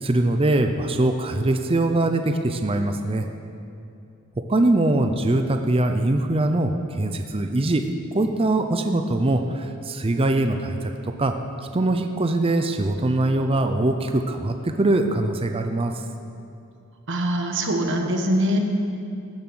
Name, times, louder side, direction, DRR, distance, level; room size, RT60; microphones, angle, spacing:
voice 1, 0.0-3.3 4.5-7.9 8.1-11.3 11.7-16.0, right 2 dB, 25° right, 6 dB, 0.5 m, -22 dB
voice 2, 17.1-18.6, right 1 dB, 55° right, 4 dB, 1.3 m, -23 dB
15.5 x 7.3 x 6.2 m, 2.6 s
head